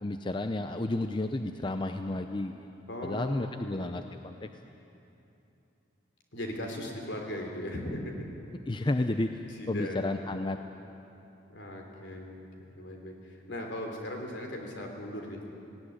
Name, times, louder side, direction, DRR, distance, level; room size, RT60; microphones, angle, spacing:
voice 1, 0.0-2.7 3.0-4.5 8.7-10.6, left 2 dB, 25° left, 7 dB, 0.6 m, -32 dB
voice 2, 2.9-3.9 6.3-8.1 9.6-10.0 11.5-12.5 12.8-15.5, left 1 dB, 70° left, 2 dB, 3.5 m, -38 dB
18.5 x 17.5 x 9.8 m, 2.8 s
head